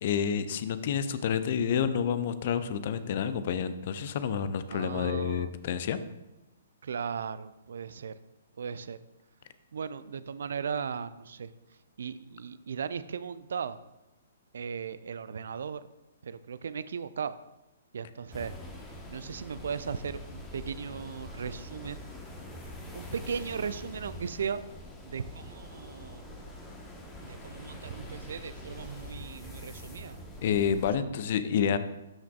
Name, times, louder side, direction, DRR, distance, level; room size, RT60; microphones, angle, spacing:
voice 1, 0.0-6.0 30.4-31.8, left 7 dB, 45° left, 12 dB, 0.5 m, -29 dB
voice 2, 4.7-5.5 6.8-8.1 8.6-9.0 9.7-11.5 12.0-13.8 14.5-15.9 16.2-17.4 17.9-18.5 19.1-22.0 22.9-24.6 25.0-26.2 27.2-30.2, right 6 dB, 55° right, 14 dB, 0.3 m, -37 dB
sound 1, 18.3-30.9, left 1 dB, 10° left, 1.1 m, -44 dB
12.0 x 5.8 x 2.3 m, 0.99 s
figure-of-eight pair, 120°, 0 cm